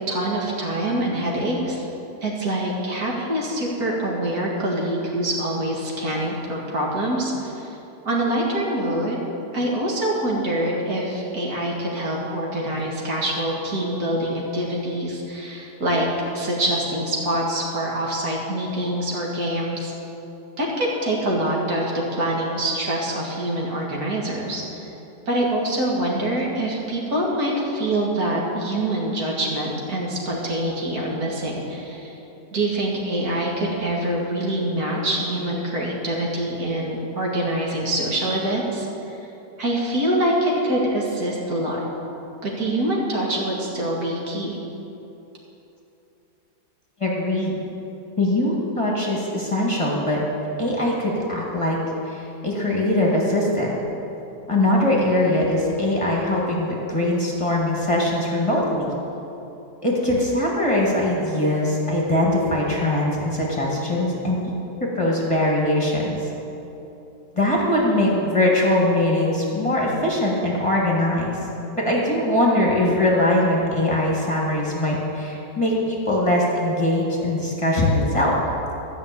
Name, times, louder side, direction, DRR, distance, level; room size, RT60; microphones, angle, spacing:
voice 1, 0.0-1.9 2.2-7.7 8.1-9.2 9.5-16.1 16.3-19.9 20.6-24.9 25.3-32.1 32.5-38.9 39.6-41.8 42.4-44.6, right 1 dB, 60° right, -3 dB, 2.3 m, -25 dB
voice 2, 47.0-47.6 48.2-50.2 50.6-51.8 52.1-53.8 54.5-58.9 59.8-64.4 64.8-66.2 67.3-71.3 71.7-78.3, left 1 dB, 20° left, -4 dB, 1.7 m, -21 dB
13.0 x 6.0 x 8.3 m, 3.0 s
omnidirectional pair, 1.8 m